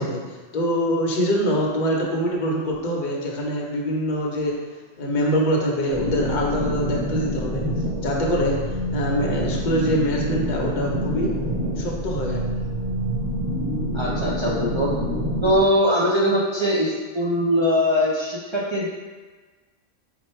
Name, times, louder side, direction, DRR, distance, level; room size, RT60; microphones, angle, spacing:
voice 1, 0.0-4.6 5.0-7.7 8.0-8.6 8.9-11.3 11.8-12.4, equal, 50° left, -2 dB, 0.8 m, -24 dB
sound 1, 5.9-15.6, equal, 15° right, 0.8 m, -26 dB
voice 2, 13.9-14.9 15.4-18.9, equal, 45° right, -7 dB, 0.3 m, -21 dB
4.3 x 2.2 x 4.2 m, 1.3 s
omnidirectional pair, 1.2 m